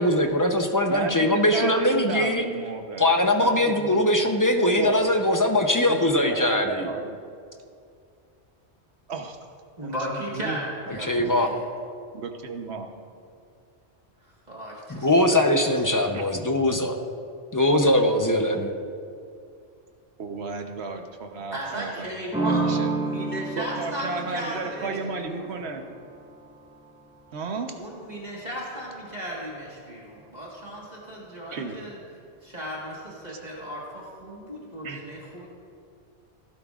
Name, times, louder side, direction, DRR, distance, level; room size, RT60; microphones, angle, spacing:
voice 1, 0.0-2.5 3.0-6.9 11.1-11.5 14.9-16.9 17.5-18.7, left 1 dB, 20° left, 4 dB, 0.6 m, -21 dB
voice 2, 0.9-4.0 4.6-5.1 5.4-7.2 9.1-9.4 9.8-10.6 12.1-12.9 20.2-22.1 22.4-22.9 23.6-25.8 27.3-27.8 31.5-31.8 33.3-33.4 34.8-35.0, right 4 dB, 75° right, 5 dB, 1.2 m, -34 dB
voice 3, 9.8-11.6 14.2-15.4 21.5-25.7 27.8-31.9 32.4-35.5, right 1 dB, 40° right, -5 dB, 1.7 m, -35 dB
sound 1, 22.3-27.9, right 3 dB, 5° right, 1.7 m, -31 dB
16.0 x 12.0 x 2.4 m, 2.3 s
omnidirectional pair, 1.1 m